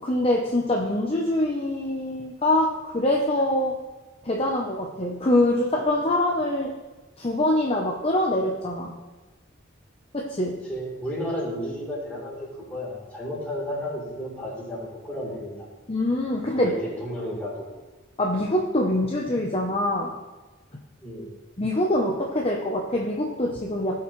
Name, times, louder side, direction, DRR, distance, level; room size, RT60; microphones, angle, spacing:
voice 1, 0.0-3.8 4.2-6.7 7.2-8.9 10.1-10.6 15.9-16.7 18.2-20.1 21.6-24.0, left 1 dB, 30° left, -1 dB, 0.8 m, -24 dB
voice 2, 10.7-15.6 16.6-17.7 21.0-21.3, equal, 10° left, -7 dB, 3.6 m, -32 dB
17.5 x 6.0 x 3.2 m, 1.2 s
head